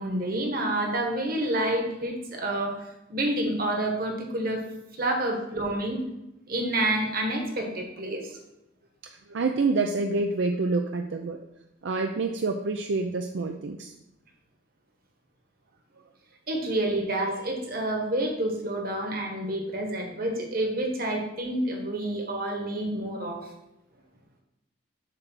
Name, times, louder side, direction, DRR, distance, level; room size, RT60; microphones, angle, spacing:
voice 1, 0.0-4.6 5.0-6.0 6.5-8.4 16.5-23.5, right 1 dB, 50° right, 2 dB, 1.3 m, -28 dB
voice 2, 9.0-11.4 11.8-13.9, right 3 dB, 75° right, 4 dB, 0.5 m, -27 dB
7.5 x 3.3 x 6.2 m, 0.91 s
head